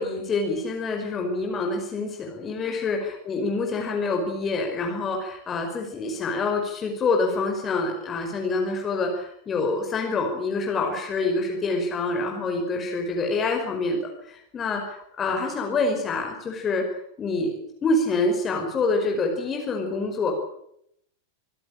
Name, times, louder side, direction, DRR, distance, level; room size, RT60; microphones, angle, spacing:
voice 1, 0.0-14.0 14.3-16.8 17.2-17.5 17.8-20.3, left 3 dB, 25° left, 2 dB, 5.2 m, -26 dB
26.5 x 16.5 x 8.9 m, 0.75 s
figure-of-eight pair, 90°, 0 cm